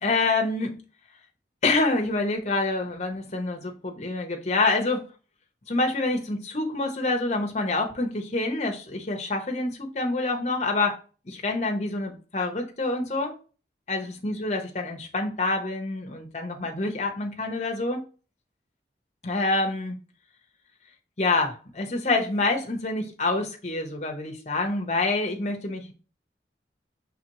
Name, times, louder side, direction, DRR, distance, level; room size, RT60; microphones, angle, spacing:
voice 1, 0.0-0.8 1.6-5.0 5.7-11.0 11.3-13.3 13.9-18.0 19.2-20.0 21.2-25.9, left 2 dB, 40° left, 0.9 m, -27 dB
4.9 x 3.5 x 3.0 m
head